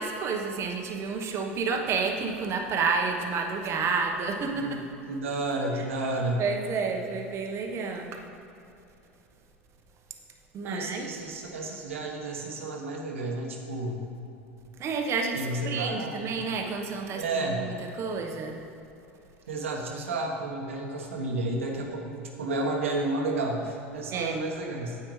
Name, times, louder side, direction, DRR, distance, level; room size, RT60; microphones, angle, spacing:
voice 1, 0.0-4.8 6.4-8.2 10.5-11.1 14.8-18.6 24.1-24.4, right 4 dB, 40° right, 3 dB, 1.1 m, -30 dB
voice 2, 5.1-6.4 10.6-14.0 15.3-16.3 17.1-17.7 19.5-25.0, right 2 dB, 80° right, 1 dB, 1.2 m, -31 dB
9.6 x 8.7 x 3.2 m, 2.8 s
hypercardioid pair, 85°, 7 cm